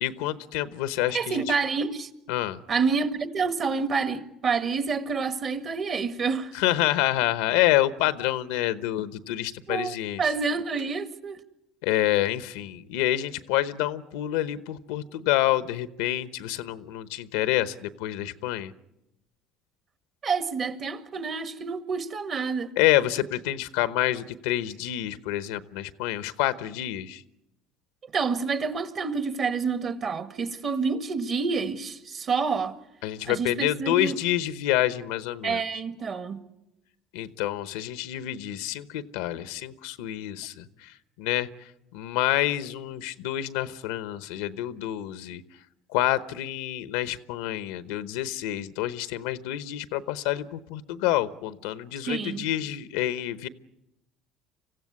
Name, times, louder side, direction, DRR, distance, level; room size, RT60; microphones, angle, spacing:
voice 1, 0.0-1.4 2.3-2.6 6.5-10.2 11.8-18.7 22.8-27.2 33.0-35.6 37.1-40.9 41.2-41.5 41.9-45.4 45.9-53.5, left 14 dB, 90° left, 0.9 m, -27 dB
voice 2, 1.1-2.1 2.7-6.6 9.7-11.4 20.2-22.7 28.1-32.7 33.3-34.2 35.4-36.4 52.0-52.5, right 5 dB, 45° right, 1.8 m, -28 dB
25.5 x 15.5 x 9.6 m
supercardioid pair, 95°, 0 cm